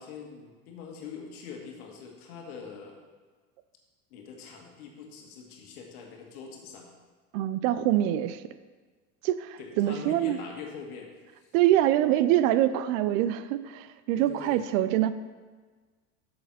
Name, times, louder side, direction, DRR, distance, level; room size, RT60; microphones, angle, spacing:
voice 1, 0.0-3.0 4.1-6.9 9.6-11.1 14.1-14.6, left 6 dB, 75° left, 1 dB, 1.7 m, -43 dB
voice 2, 7.3-8.4 9.2-10.4 11.5-15.1, right 13 dB, 65° right, 14 dB, 0.6 m, -25 dB
7.9 x 6.9 x 4.2 m, 1.4 s
hypercardioid pair, 90°, 44 cm